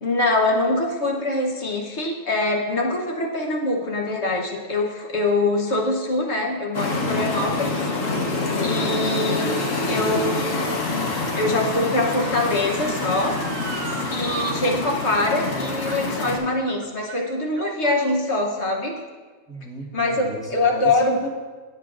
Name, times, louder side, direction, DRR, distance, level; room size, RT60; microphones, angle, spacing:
voice 1, 0.0-7.8 8.6-9.5 9.9-13.4 14.1-19.0 19.9-21.2, left 2 dB, 60° left, 0 dB, 1.3 m, -24 dB
sound 1, 6.7-16.4, left 3 dB, 80° left, 1.6 m, -26 dB
Motor vehicle (road) / Siren, 11.2-14.6 14.9-15.0 15.8-16.2 16.5-18.2 18.9-19.0, right 8 dB, 85° right, 1.0 m, -39 dB
voice 2, 19.5-21.3, equal, 5° left, -3 dB, 1.3 m, -35 dB
17.0 x 7.0 x 2.5 m, 1.4 s
omnidirectional pair, 1.3 m